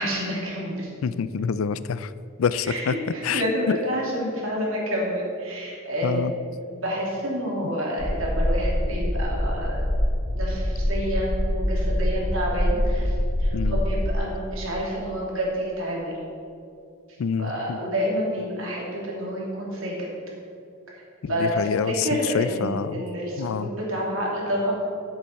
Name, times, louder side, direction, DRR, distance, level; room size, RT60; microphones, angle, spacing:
voice 1, 0.0-0.9 2.6-6.3 6.7-9.9 10.3-16.2 17.1-20.1 20.9-21.0 21.3-24.7, equal, 85° right, -3 dB, 2.7 m, -28 dB
voice 2, 1.0-2.1 2.4-2.9 3.2-3.8 6.0-6.3 13.5-13.8 17.2-17.8 21.2-23.0 23.4-23.7, left 6 dB, 90° left, 15 dB, 0.4 m, -27 dB
sound 1, 8.0-14.2, left 1 dB, 15° left, 0.4 m, -25 dB
7.7 x 7.1 x 6.5 m, 2.5 s
head